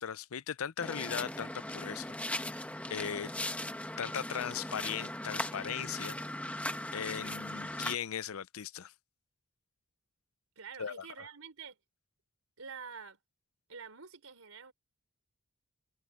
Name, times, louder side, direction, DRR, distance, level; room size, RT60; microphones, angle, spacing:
voice 1, 0.0-2.1 2.4-2.5 2.9-3.3 4.0-6.2 6.9-8.9 10.8-11.3, left 8 dB, 65° left, 0.5 m, -38 dB
sound 1, 0.8-8.0, left 1 dB, 5° left, 1.2 m, -39 dB
voice 2, 10.6-11.8 12.6-13.2 13.7-14.7, right 6 dB, 70° right, 4.1 m, -47 dB
head